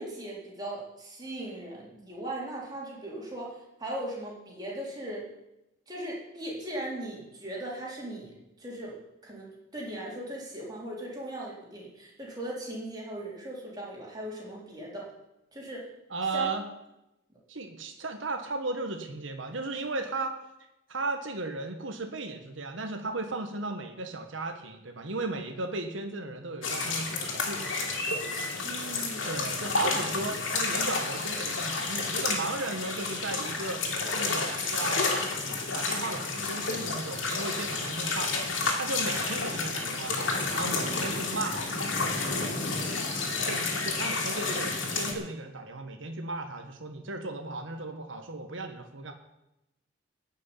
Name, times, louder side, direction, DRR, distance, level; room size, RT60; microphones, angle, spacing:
voice 1, 0.0-5.3 5.9-8.3 8.6-9.0 9.2-15.1 15.5-15.9 16.3-16.5 28.6-29.4, right 1 dB, 20° right, -4 dB, 4.1 m, -38 dB
voice 2, 16.1-16.7 17.5-20.4 20.9-27.9 29.3-33.8 34.1-35.1 35.7-38.3 38.7-41.7 43.4-49.1, right 2 dB, 75° right, 5 dB, 1.4 m, -35 dB
sound 1, 26.6-45.1, left 3 dB, 80° left, 3.0 m, -30 dB
15.5 x 6.4 x 9.9 m, 0.92 s
head